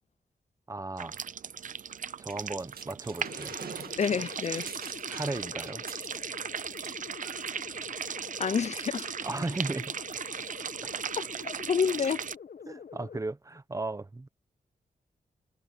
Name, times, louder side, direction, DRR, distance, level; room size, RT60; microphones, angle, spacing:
voice 1, 0.7-1.2 2.2-3.6 5.1-5.8 9.2-10.0 10.8-11.0 12.7-14.3, right 2 dB, 20° right, 1.1 m, -36 dB
sound 1, 1.0-12.3, right 7 dB, 60° right, 0.6 m, -38 dB
sound 2, 2.3-6.5 6.8-7.0 7.2-7.7 8.4-8.5, right 7 dB, 80° right, 2.0 m, -45 dB
sound 3, 3.2-13.2, left 6 dB, 65° left, 1.4 m, -46 dB
voice 2, 4.0-4.7 8.4-9.1 11.7-12.2, left 6 dB, 50° left, 0.5 m, -28 dB
wide cardioid pair, 110°, 15 cm